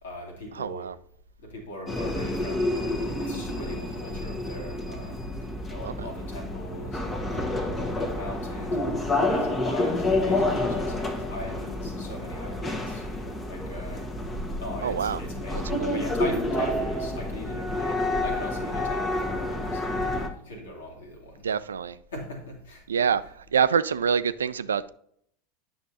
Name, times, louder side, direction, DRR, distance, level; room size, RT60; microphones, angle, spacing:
voice 1, 0.0-0.9 1.4-5.3 5.6-13.2 13.5-14.1 14.6-21.7 22.1-23.1, left 1 dB, 75° left, 2.2 m, -40 dB
voice 2, 0.5-1.0 5.8-6.1 14.8-15.2 15.8-16.0 21.4-22.0 22.9-23.2 23.5-24.9, right 7 dB, 80° right, 0.3 m, -25 dB
sound 1, 1.9-20.3, left 1 dB, 20° left, 1.2 m, -29 dB
9.4 x 6.0 x 2.8 m
figure-of-eight pair, 80°, 0 cm